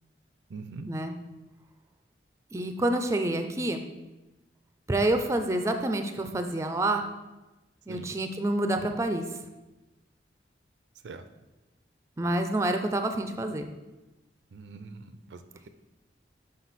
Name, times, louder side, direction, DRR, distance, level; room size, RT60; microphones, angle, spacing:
voice 1, 0.5-0.9 7.9-8.1 11.0-11.2 14.5-15.4, right 4 dB, 85° right, 10 dB, 0.4 m, -42 dB
voice 2, 2.5-3.8 4.9-7.0 7.9-9.2 12.2-13.7, right 1 dB, 15° right, 6 dB, 0.4 m, -28 dB
6.0 x 4.9 x 4.1 m, 1.1 s
head